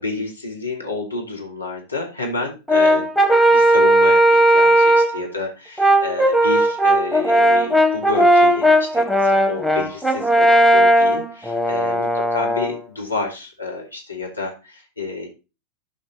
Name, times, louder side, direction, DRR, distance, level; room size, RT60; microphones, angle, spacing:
voice 1, 0.0-3.1 3.5-15.3, left 3 dB, 85° left, 0 dB, 2.8 m, -29 dB
Brass instrument, 2.7-5.2 5.8-12.7, right 1 dB, ahead, 1.0 m, -16 dB
12.0 x 5.4 x 4.0 m, 0.30 s
figure-of-eight pair, 90°, 0 cm